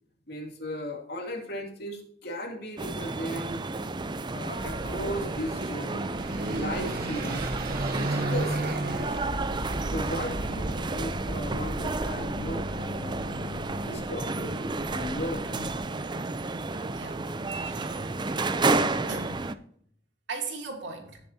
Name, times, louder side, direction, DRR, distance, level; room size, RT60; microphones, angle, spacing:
voice 1, 0.3-3.6 4.3-6.1 6.5-7.5 7.9-9.2 9.9-14.5 14.9-15.7, equal, 55° left, 1 dB, 2.7 m, -36 dB
sound 1, 2.8-19.5, right 3 dB, 25° right, 0.5 m, -31 dB
Car passing by / Accelerating revving vroom, 4.6-15.8, right 1 dB, 50° right, 1.1 m, -35 dB
voice 2, 17.5-18.1 19.1-19.4 20.3-21.2, right 4 dB, 70° right, 1 dB, 2.9 m, -38 dB
18.0 x 7.0 x 2.8 m, 0.64 s
head